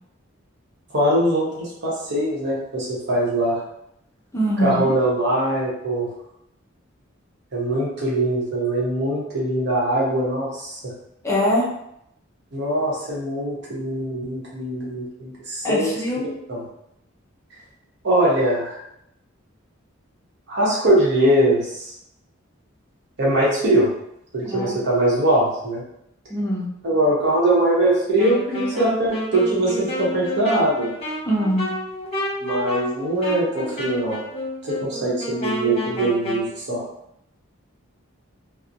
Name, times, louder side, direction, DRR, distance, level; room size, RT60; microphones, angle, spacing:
voice 1, 0.9-3.6 4.6-6.1 7.5-10.9 12.5-15.9 16.5-16.6 18.0-18.8 20.5-21.9 23.2-23.9 24.3-25.8 26.8-30.9 32.4-34.2 34.6-36.8, right 1 dB, 60° right, -5 dB, 0.9 m, -22 dB
voice 2, 4.3-5.0 11.2-11.7 15.6-16.3 24.4-24.8 26.3-26.7 31.3-31.7, equal, 15° left, -4 dB, 0.5 m, -22 dB
Wind instrument woodwind instrument, 28.2-36.5, left 1 dB, 30° left, 0.8 m, -30 dB
2.9 x 2.0 x 2.5 m, 0.77 s
head